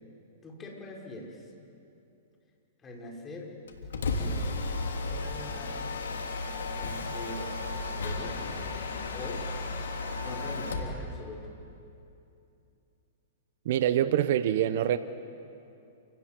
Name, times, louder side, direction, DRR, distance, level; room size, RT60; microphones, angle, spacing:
voice 1, 0.4-1.5 2.8-3.5 4.0-4.6 5.1-5.9 6.7-8.4 9.1-9.5 10.2-11.5, left 2 dB, 20° left, 0 dB, 5.3 m, -43 dB
Mechanisms, 3.7-11.0, left 3 dB, 80° left, 3.1 m, -34 dB
voice 2, 13.6-15.0, right 11 dB, 60° right, 13 dB, 0.9 m, -25 dB
29.0 x 18.5 x 7.6 m, 2.7 s
hypercardioid pair, 120°, 0 cm